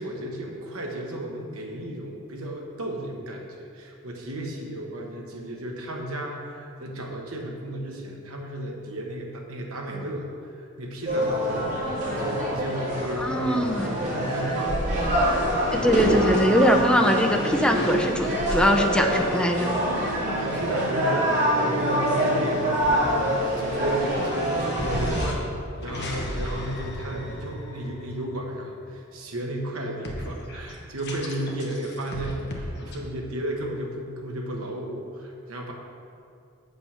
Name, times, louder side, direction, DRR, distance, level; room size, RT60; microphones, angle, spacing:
voice 1, 0.0-15.1 20.4-25.5 25.8-35.7, right 1 dB, 70° right, 0 dB, 1.2 m, -34 dB
sound 1, 11.1-25.2, equal, 35° right, 2.1 m, -25 dB
voice 2, 13.0-13.9 15.7-19.7, equal, 5° left, 2 dB, 0.6 m, -22 dB
sound 2, 17.2-20.7 21.1-29.4 30.0-33.0, left 1 dB, 50° left, 1.1 m, -38 dB
7.9 x 5.4 x 5.8 m, 2.4 s
head